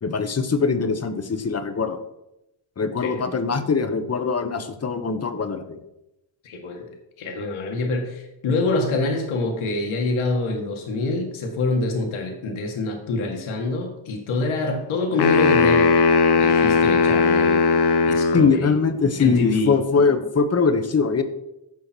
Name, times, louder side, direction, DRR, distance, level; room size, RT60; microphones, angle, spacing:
voice 1, 0.0-2.0 2.8-5.8 18.3-21.2, left 5 dB, 30° left, 9 dB, 1.1 m, -22 dB
voice 2, 6.4-6.9 7.2-16.1 16.3-17.6 18.1-18.7 19.2-19.7, left 3 dB, 85° left, 2 dB, 2.0 m, -26 dB
sound 1, 15.2-18.5, left 4 dB, 55° left, 1.0 m, -18 dB
15.5 x 5.7 x 4.6 m, 0.89 s
cardioid pair, 110°, 47 cm